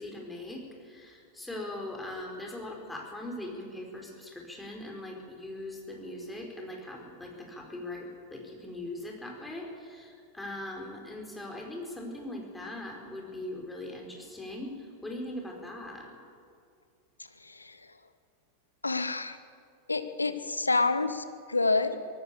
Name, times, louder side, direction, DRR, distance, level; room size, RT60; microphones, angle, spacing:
voice 1, 0.0-16.1, left 1 dB, 5° left, 0 dB, 4.8 m, -40 dB
voice 2, 17.4-17.8 18.8-19.4 19.9-22.0, left 3 dB, 80° left, 11 dB, 1.2 m, -28 dB
24.0 x 18.5 x 7.0 m, 2.3 s
figure-of-eight pair, 90°, 0 cm